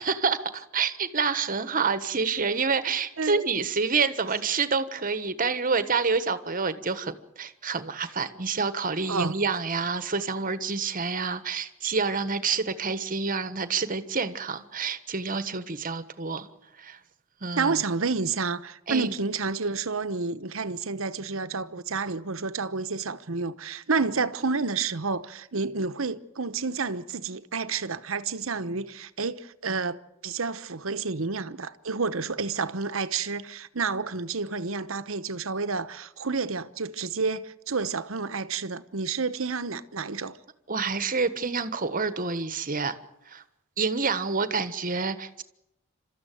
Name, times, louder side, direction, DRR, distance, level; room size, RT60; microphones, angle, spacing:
voice 1, 0.0-16.5 16.8-17.0 17.4-17.8 18.9-19.1 40.7-43.0 43.3-43.4 43.8-45.4, right 5 dB, 40° right, 1.3 m, -28 dB
voice 2, 17.6-40.4, right 4 dB, 70° right, 1.0 m, -30 dB
28.5 x 13.5 x 9.2 m
head